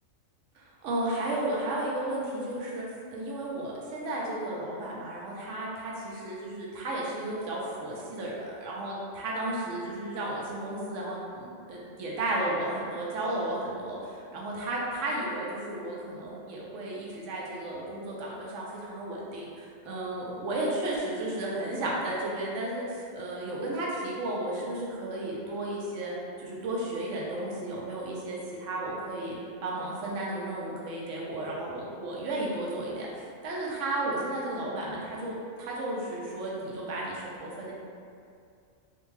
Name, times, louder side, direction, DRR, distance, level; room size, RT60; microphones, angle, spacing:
voice 1, 0.6-26.1 26.4-29.4 29.6-33.1 33.4-37.7, right 1 dB, 75° right, -4 dB, 0.9 m, -33 dB
2.5 x 2.2 x 3.0 m, 2.4 s
omnidirectional pair, 1.3 m